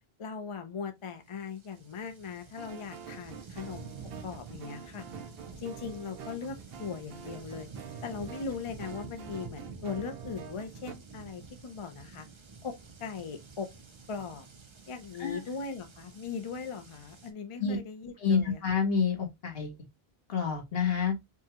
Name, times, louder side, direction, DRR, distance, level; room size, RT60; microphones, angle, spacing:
voice 1, 0.2-3.9 4.2-5.0 5.6-7.7 8.0-12.3 12.6-13.7 14.1-14.5 14.9-18.6, left 5 dB, 40° left, 0.5 m, -39 dB
sound 1, 1.3-17.3, right 4 dB, 35° right, 0.5 m, -49 dB
sound 2, 2.6-10.9, right 7 dB, 70° right, 0.8 m, -47 dB
voice 2, 18.2-19.7 20.3-21.2, left 6 dB, 65° left, 1.4 m, -28 dB
5.3 x 2.2 x 2.8 m
omnidirectional pair, 1.1 m